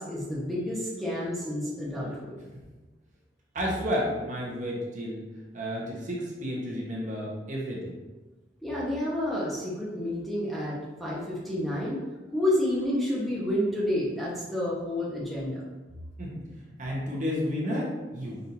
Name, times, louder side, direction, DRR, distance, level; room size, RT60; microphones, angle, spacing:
voice 1, 0.0-2.4 8.6-12.0 12.3-15.6, left 1 dB, ahead, -7 dB, 0.8 m, -30 dB
voice 2, 3.5-5.2 5.5-7.9 16.2-16.4 16.8-18.4, equal, 40° right, -3 dB, 0.9 m, -31 dB
5.1 x 2.6 x 2.9 m, 1.2 s
head